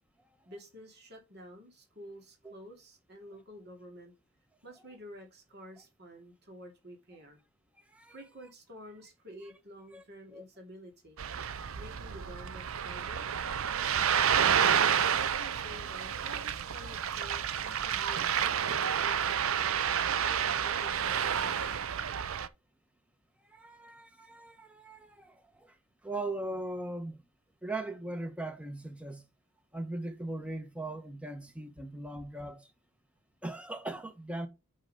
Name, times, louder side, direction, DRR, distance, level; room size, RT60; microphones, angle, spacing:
voice 1, 0.5-4.1 4.6-7.4 8.1-11.2 11.7-13.3 14.6-19.7 20.2-22.0, equal, 50° right, 2.7 m, -50 dB
Ocean, 11.2-22.5, right 8 dB, 70° right, 0.5 m, -30 dB
voice 2, 23.5-25.8 26.0-27.2 27.6-29.3 29.7-32.7 33.4-34.5, right 2 dB, 5° right, 1.1 m, -39 dB
5.7 x 5.7 x 5.5 m
head